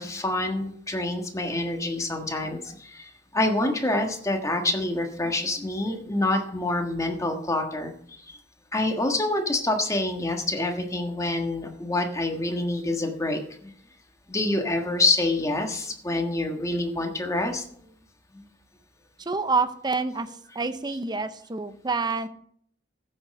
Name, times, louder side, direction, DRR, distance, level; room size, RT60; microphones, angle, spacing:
voice 1, 0.0-8.4 8.7-13.7 14.3-17.6 18.3-18.4, left 2 dB, 15° left, 3 dB, 1.5 m, -27 dB
voice 2, 19.2-22.3, right 4 dB, 20° right, 11 dB, 0.6 m, -28 dB
14.5 x 6.5 x 5.4 m, 0.64 s
head